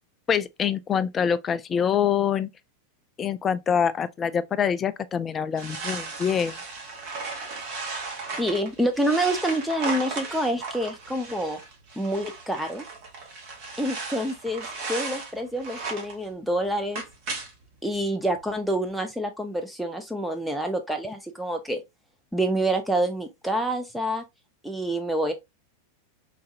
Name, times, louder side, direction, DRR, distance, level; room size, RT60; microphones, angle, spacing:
voice 1, 0.3-2.5 3.2-6.5, left 8 dB, 25° left, 0.3 m, -25 dB
sound 1, 5.6-16.2 16.6-17.7 18.0-18.1 18.4-18.5 18.9-19.0, right 4 dB, 45° right, 1.1 m, -36 dB
voice 2, 8.4-11.6 12.0-12.8 13.8-17.0 17.8-21.8 22.3-24.2 24.6-25.3, right 1 dB, ahead, 0.7 m, -27 dB
3.9 x 2.5 x 2.5 m
figure-of-eight pair, 90°, 0 cm